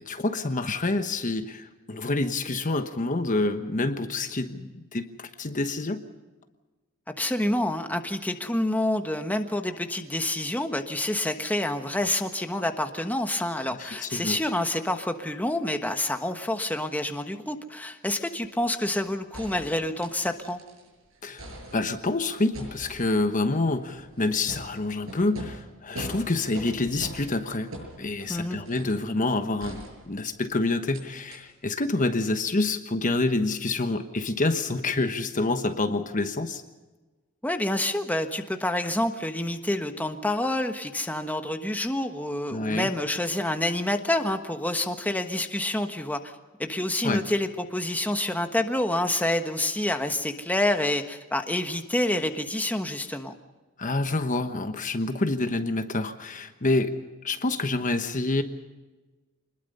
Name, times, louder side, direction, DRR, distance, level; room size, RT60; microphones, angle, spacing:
voice 1, 0.0-6.0 13.8-14.4 21.2-21.5 21.7-27.7 28.0-36.6 42.5-42.9 47.0-47.2 53.8-57.0 57.2-58.4, left 2 dB, 40° left, 8 dB, 1.2 m, -27 dB
voice 2, 7.1-20.6 28.3-28.6 37.4-46.3 46.6-53.3, left 1 dB, 10° left, 6 dB, 1.3 m, -28 dB
sound 1, 19.3-20.9 21.2-22.1 22.5-29.1 29.6-30.5 30.9-31.0 31.3-31.4, right 1 dB, 85° right, 7.1 m, -42 dB
26.0 x 20.5 x 5.5 m, 1.2 s
head